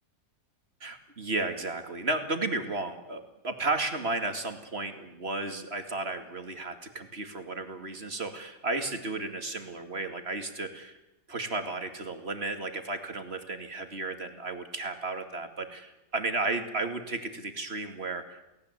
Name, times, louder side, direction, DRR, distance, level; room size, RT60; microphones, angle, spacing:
voice 1, 0.8-11.0 11.3-18.4, right 2 dB, 40° right, 6 dB, 2.6 m, -33 dB
29.5 x 18.5 x 8.3 m, 0.97 s
omnidirectional pair, 1.8 m